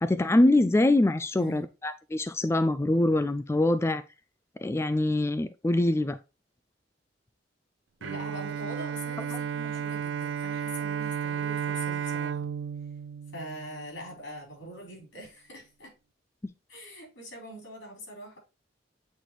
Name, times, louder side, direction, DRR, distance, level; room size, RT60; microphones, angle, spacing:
voice 1, 0.0-4.0 4.6-6.2 9.3-9.4, left 1 dB, 15° left, 0.3 m, -24 dB
voice 2, 8.0-12.5 13.3-15.9 16.7-18.4, equal, 85° left, 4.2 m, -43 dB
Bowed string instrument, 8.0-14.2, right 7 dB, 85° right, 0.4 m, -33 dB
8.3 x 4.0 x 3.1 m
head